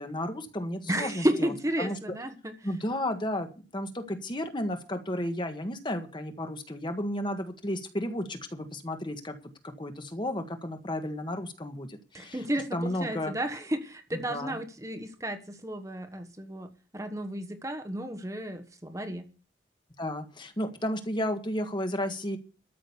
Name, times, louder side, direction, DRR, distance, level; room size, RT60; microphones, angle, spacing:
voice 1, 0.0-1.5 1.8-2.0 2.6-9.3 9.6-12.4 12.7-13.3 14.1-14.6 20.0-22.4, left 1 dB, 25° left, 1.5 m, -33 dB
voice 2, 0.9-2.5 12.1-16.7 16.9-19.2, right 1 dB, 15° right, 1.3 m, -32 dB
13.5 x 6.4 x 8.2 m
head